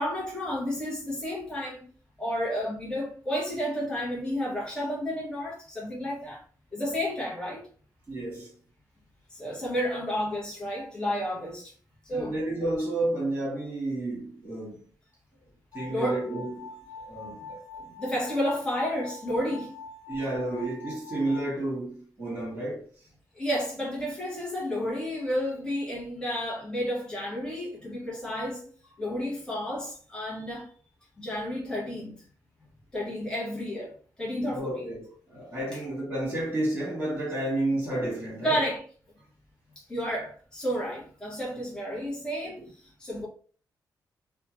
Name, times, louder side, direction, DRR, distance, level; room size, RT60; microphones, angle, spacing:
voice 1, 0.0-1.9 2.2-6.4 6.7-7.7 9.3-11.7 12.0-12.4 15.9-16.2 17.8-19.8 23.3-28.6 29.0-30.7 31.2-32.2 32.9-34.9 38.4-38.8 39.9-43.3, equal, 10° left, 1.1 m, -31 dB
voice 2, 8.1-8.5 12.1-14.8 15.7-16.7 17.0-17.6 20.1-22.9 34.5-38.6, right 1 dB, 20° right, 1.4 m, -31 dB
sound 1, 15.7-21.5, left 3 dB, 65° left, 0.5 m, -44 dB
2.8 x 2.2 x 2.9 m
wide cardioid pair, 135°, 7 cm